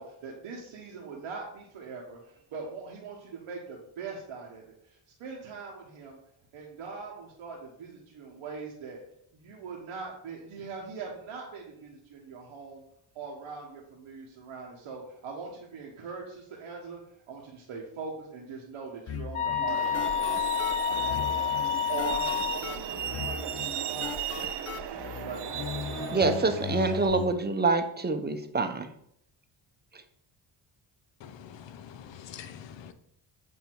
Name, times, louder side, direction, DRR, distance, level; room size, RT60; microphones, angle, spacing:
voice 1, 0.0-6.2 6.5-9.0 9.3-12.8 13.1-17.0 17.3-20.2 20.9-21.4 21.9-23.5 23.9-24.6 24.9-26.2, right 4 dB, 85° right, -2 dB, 1.1 m, -41 dB
sound 1, 19.1-27.3, left 8 dB, 35° left, 0.4 m, -38 dB
sound 2, 19.3-22.6, left 9 dB, 85° left, 1.2 m, -29 dB
Truck, 19.7-27.1, right 10 dB, 55° right, 0.6 m, -36 dB
voice 2, 26.1-28.9, right 3 dB, 20° right, 8 dB, 0.7 m, -26 dB
voice 3, 31.2-32.9, left 8 dB, 65° left, 9 dB, 0.7 m, -45 dB
8.0 x 2.7 x 4.4 m, 0.70 s
cardioid pair, 80°, 49 cm